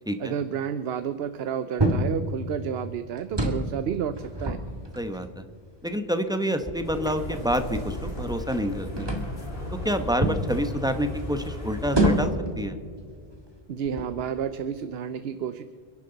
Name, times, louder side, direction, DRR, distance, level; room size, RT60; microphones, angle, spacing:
voice 1, 0.2-4.6 13.7-15.6, right 8 dB, 70° right, 12 dB, 0.9 m, -31 dB
sound 1, 1.8-2.2 3.2-3.7 4.2-5.2 6.0-6.1 6.6-8.6 9.0-9.4 10.2-10.5 11.9-12.5 13.2-13.4 13.8-14.4, right 1 dB, 25° right, 1.8 m, -27 dB
voice 2, 5.0-5.4 5.8-9.1 9.8-12.7, equal, 5° right, 8 dB, 0.9 m, -28 dB
sound 2, 6.8-12.3, left 1 dB, 65° left, 4.5 m, -36 dB
28.5 x 11.0 x 3.9 m, 2.1 s
omnidirectional pair, 1.1 m